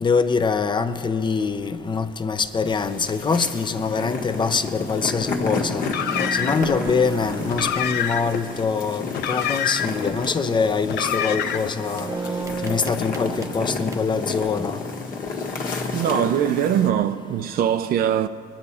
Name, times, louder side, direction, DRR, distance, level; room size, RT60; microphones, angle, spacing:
voice 1, 0.0-5.8 6.3-12.1 12.6-14.8, left 5 dB, 25° left, 0.7 m, -24 dB
sound 1, 2.4-2.7 3.3-3.5 5.5-5.6 5.7-9.1 9.9-10.2 10.6-10.8 11.3-14.5, right 4 dB, 15° right, 0.8 m, -35 dB
sound 2, 2.6-16.9, left 3 dB, 55° left, 1.6 m, -31 dB
Car, 5.8-6.8 7.4-8.4 9.1-10.1 10.8-11.8, left 9 dB, 80° left, 0.8 m, -26 dB
voice 2, 15.9-18.3, right 10 dB, 60° right, 0.5 m, -22 dB
21.5 x 10.0 x 4.2 m
cardioid pair, 110°, 17 cm